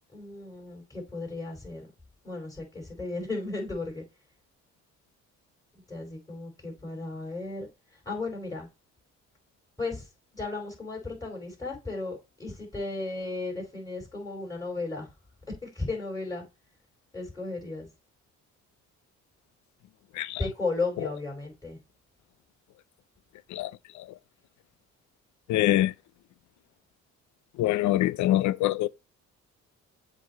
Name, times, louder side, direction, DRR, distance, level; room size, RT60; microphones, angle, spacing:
voice 1, 0.1-1.9 2.2-4.0 5.9-7.7 8.0-8.7 9.8-10.1 10.3-15.1 15.5-16.4 17.1-17.9 20.4-21.8, left 3 dB, 10° left, 4.4 m, -35 dB
voice 2, 20.1-20.5 23.5-24.1 25.5-25.9 27.6-28.9, left 14 dB, 70° left, 0.5 m, -25 dB
7.6 x 2.9 x 5.3 m
cardioid pair, 90°, 30 cm